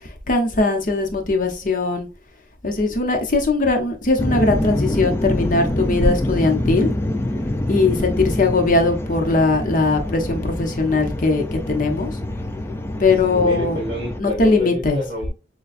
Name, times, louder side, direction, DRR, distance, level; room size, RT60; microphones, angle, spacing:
voice 1, 0.3-2.1 2.6-6.9 7.7-12.1 13.0-13.8 14.2-15.0, left 3 dB, 50° left, 0.8 m, -20 dB
sound 1, 4.2-14.2, left 1 dB, 15° left, 0.3 m, -25 dB
voice 2, 13.2-15.3, left 1 dB, 30° right, 2.2 m, -29 dB
6.7 x 2.3 x 2.4 m
head